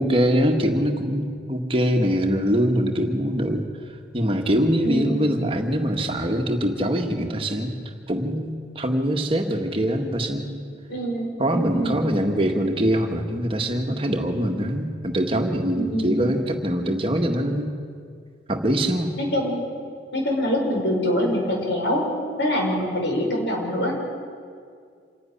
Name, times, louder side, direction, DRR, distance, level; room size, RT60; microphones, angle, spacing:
voice 1, 0.0-3.7 4.1-7.7 8.1-10.6 11.4-17.7 18.5-19.2, equal, 30° right, 3 dB, 1.7 m, -23 dB
voice 2, 4.8-5.2 10.9-12.0 15.7-16.3 19.2-19.6 20.1-22.1 22.4-24.0, equal, 85° left, 0 dB, 5.4 m, -24 dB
27.0 x 11.5 x 10.0 m, 2.2 s
head